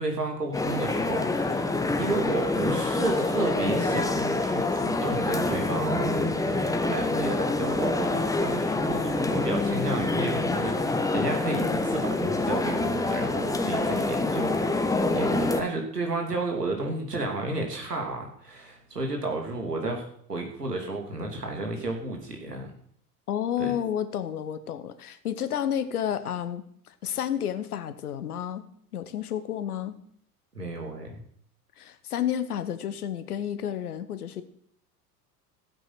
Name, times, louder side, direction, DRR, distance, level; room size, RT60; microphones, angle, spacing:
voice 1, 0.0-22.7 23.6-23.7 30.5-31.2, right 2 dB, 80° right, 2 dB, 3.1 m, -32 dB
sound 1, 0.5-15.6, left 2 dB, 5° left, 1.3 m, -26 dB
sound 2, 0.9-15.0, right 4 dB, 35° right, 3.1 m, -49 dB
voice 2, 23.3-28.7 28.9-30.0 31.8-34.4, left 9 dB, 70° left, 12 dB, 1.2 m, -31 dB
15.0 x 9.3 x 5.9 m, 0.66 s
figure-of-eight pair, 75°, 46 cm